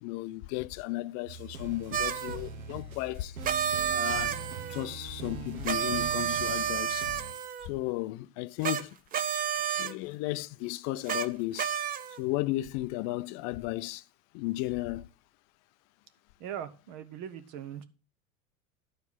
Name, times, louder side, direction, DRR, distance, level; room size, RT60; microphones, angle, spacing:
voice 1, 0.0-3.4 3.9-4.4 4.7-7.1 7.6-9.0 9.8-11.7 12.2-14.0 14.3-15.1, left 18 dB, 40° left, 0.5 m, -34 dB
sound 1, 1.3-7.3, right 4 dB, 75° right, 1.3 m, -42 dB
sound 2, 1.9-2.4 3.4-4.9 5.6-7.7 8.6-8.8 9.1-9.9 11.1-11.3 11.6-12.2, right 8 dB, 20° right, 0.5 m, -30 dB
voice 2, 16.4-17.9, right 9 dB, 45° right, 1.1 m, -40 dB
11.0 x 4.6 x 5.5 m
hypercardioid pair, 85°, 42 cm